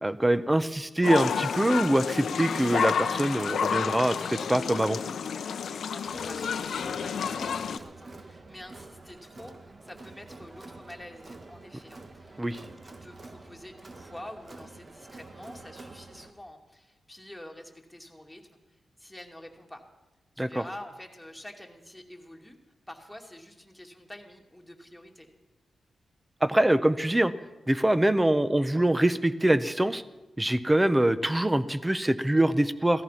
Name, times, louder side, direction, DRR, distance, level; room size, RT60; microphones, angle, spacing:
voice 1, 0.0-5.0 12.4-12.6 20.4-20.6 26.4-27.3 27.7-30.0 30.4-33.0, right 1 dB, 15° right, 14 dB, 0.8 m, -24 dB
sound 1, 1.0-7.8, left 7 dB, 80° left, 0.7 m, -30 dB
voice 2, 5.9-18.6 19.0-19.8 20.4-22.6 22.9-25.3, left 1 dB, 5° left, 1 dB, 2.5 m, -47 dB
Crowd, 6.1-16.3, right 2 dB, 40° right, 1.3 m, -48 dB
16.0 x 13.5 x 5.8 m, 1.1 s
cardioid pair, 75°, 0 cm